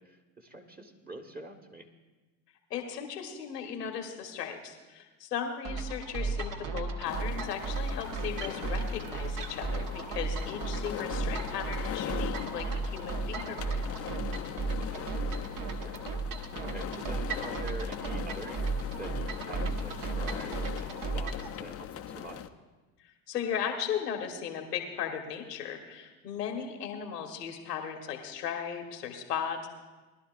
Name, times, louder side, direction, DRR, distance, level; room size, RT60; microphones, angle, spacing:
voice 1, 0.0-1.9 14.5-22.4, right 1 dB, 20° right, 2 dB, 1.4 m, -46 dB
voice 2, 2.7-13.8 16.7-17.0 23.3-29.7, left 8 dB, 90° left, 4 dB, 1.5 m, -37 dB
sound 1, 5.6-21.5, right 3 dB, 45° right, 1.3 m, -35 dB
sound 2, 7.0-22.5, left 9 dB, 30° left, 0.6 m, -40 dB
20.5 x 11.5 x 2.5 m, 1.2 s
hypercardioid pair, 75°, 46 cm